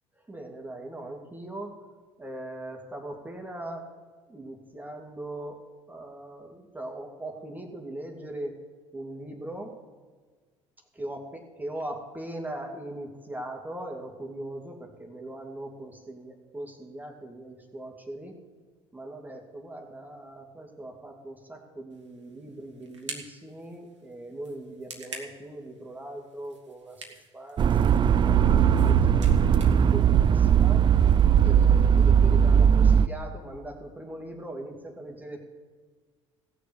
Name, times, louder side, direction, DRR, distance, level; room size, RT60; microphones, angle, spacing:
voice 1, 0.2-1.8 2.2-3.9 4.3-5.6 5.9-8.6 8.9-9.8 10.9-18.3 18.9-27.1 27.3-29.3 29.9-30.8 31.4-35.4, right 1 dB, 10° right, 2 dB, 2.5 m, -40 dB
sound 1, 21.9-31.1, right 4 dB, 85° right, 1.5 m, -47 dB
sound 2, 27.6-33.1, right 8 dB, 30° right, 0.5 m, -19 dB
16.5 x 6.8 x 8.1 m, 1.4 s
figure-of-eight pair, 60°, 15 cm